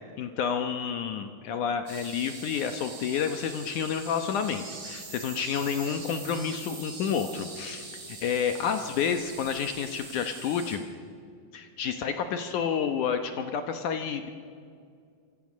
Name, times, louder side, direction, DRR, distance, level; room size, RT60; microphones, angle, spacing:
voice 1, 0.2-7.9 8.2-10.9 11.5-14.3, left 7 dB, 65° left, 7 dB, 2.2 m, -30 dB
sound 1, 1.9-10.8, right 3 dB, 40° right, 4.9 m, -43 dB
27.0 x 25.0 x 6.3 m, 2.3 s
omnidirectional pair, 4.4 m